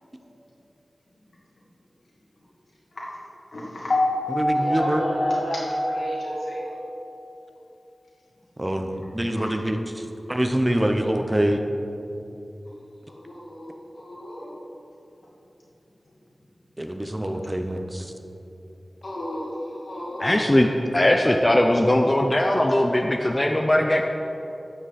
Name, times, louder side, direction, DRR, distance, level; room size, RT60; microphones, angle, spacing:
voice 1, 3.5-7.0 9.4-9.5 13.1-14.5 19.0-19.5 19.8-20.4, left 1 dB, 80° left, -5 dB, 2.3 m, -28 dB
voice 2, 4.4-5.0 8.6-11.6 16.8-18.1, right 1 dB, 20° right, 5 dB, 0.7 m, -25 dB
voice 3, 20.2-24.0, left 1 dB, 25° left, 3 dB, 0.6 m, -20 dB
12.0 x 6.3 x 4.2 m, 2.9 s
wide cardioid pair, 60°, 0 cm